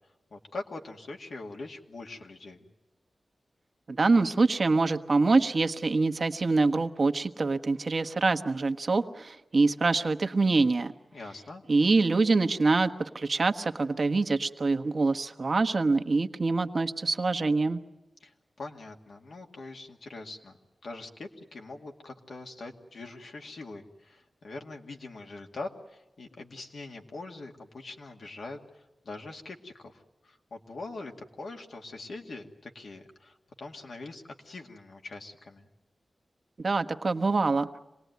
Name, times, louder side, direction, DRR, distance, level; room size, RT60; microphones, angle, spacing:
voice 1, 0.3-2.6 11.1-11.6 18.2-20.6 20.8-35.7, left 3 dB, 75° left, 2 dB, 2.1 m, -43 dB
voice 2, 3.9-10.9 11.7-17.8 36.6-37.8, right 3 dB, 55° right, 7 dB, 1.1 m, -25 dB
26.5 x 19.0 x 9.4 m, 1.0 s
wide cardioid pair, 70°, 0 cm